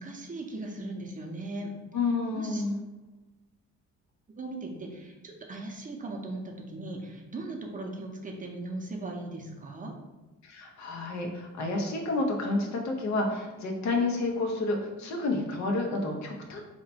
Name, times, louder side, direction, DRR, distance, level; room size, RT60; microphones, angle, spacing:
voice 1, 0.0-1.7 2.3-2.6 4.4-9.9, right 2 dB, 25° right, 1 dB, 0.5 m, -38 dB
voice 2, 1.9-2.8 10.4-16.6, left 3 dB, 70° left, 1 dB, 0.7 m, -30 dB
2.9 x 2.1 x 4.1 m, 1.1 s
cardioid pair, 90°, 30 cm